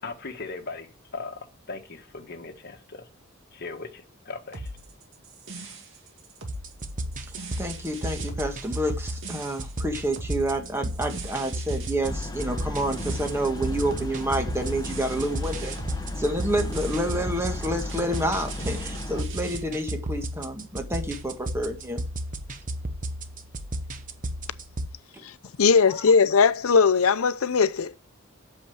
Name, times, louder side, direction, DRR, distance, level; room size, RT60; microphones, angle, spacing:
voice 1, 0.0-3.1 3.5-4.7, left 3 dB, 50° left, 1.5 m, -38 dB
sound 1, 4.5-19.6, right 2 dB, 65° right, 2.4 m, -41 dB
sound 2, 6.5-24.9, right 1 dB, 40° right, 1.1 m, -34 dB
voice 2, 7.6-15.8 16.2-22.0 25.1-25.2 25.9-26.0, right 1 dB, 10° right, 1.8 m, -29 dB
sound 3, 12.0-19.2, left 1 dB, 20° left, 1.1 m, -35 dB
voice 3, 25.2-28.0, left 5 dB, 85° left, 0.6 m, -20 dB
8.5 x 6.7 x 7.8 m
head